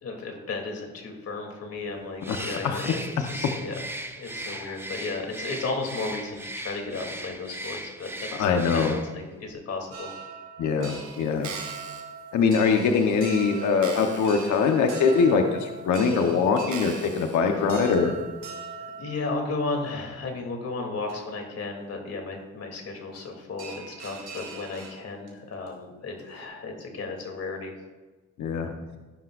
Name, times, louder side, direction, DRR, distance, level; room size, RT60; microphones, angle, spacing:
voice 1, 0.0-3.0 3.3-3.8 4.1-10.1 19.0-27.7, left 3 dB, 55° left, 2 dB, 3.2 m, -34 dB
Bird, 2.2-9.3, right 1 dB, 10° right, 1.0 m, -38 dB
voice 2, 2.3-3.0 3.4-3.5 4.3-4.8 8.4-8.9 10.6-11.5 12.3-18.1 28.4-28.7, left 5 dB, 70° left, 3 dB, 1.3 m, -23 dB
sound 1, 9.9-19.9 20.6-20.7 21.1-21.2 23.1-23.3 23.6-25.3 25.7-25.8 26.1-26.4, right 4 dB, 90° right, 3.2 m, -42 dB
sound 2, 11.3-12.0 12.7-12.8 13.2-13.3 13.8-14.5 14.9-15.0 15.8-15.9 16.7-17.4 17.9-18.0, right 6 dB, 70° right, 2.1 m, -40 dB
17.5 x 11.0 x 2.6 m, 1.2 s
cardioid pair, 90°, 30 cm